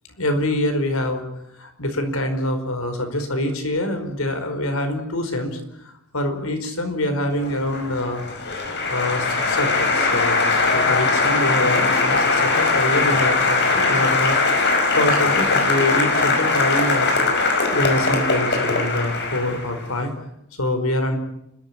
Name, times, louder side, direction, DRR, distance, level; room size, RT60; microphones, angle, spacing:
voice 1, 0.2-1.2 1.6-5.6 6.1-14.4 14.9-20.1 20.6-21.2, left 1 dB, 80° left, 7 dB, 4.8 m, -25 dB
Applause, 7.4-19.9, left 3 dB, 55° left, 5.4 m, -20 dB
29.5 x 14.0 x 9.9 m, 0.80 s
head